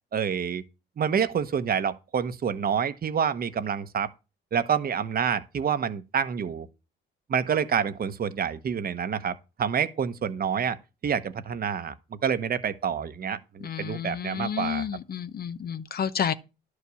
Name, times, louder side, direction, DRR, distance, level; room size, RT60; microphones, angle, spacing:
voice 1, 0.1-0.6 1.0-4.1 4.5-6.7 7.3-10.8 11.0-11.9 12.2-14.9, right 7 dB, 50° right, 1.0 m, -27 dB
voice 2, 13.6-16.3, left 8 dB, 50° left, 0.9 m, -30 dB
11.0 x 4.9 x 6.9 m
cardioid pair, 90°, 20 cm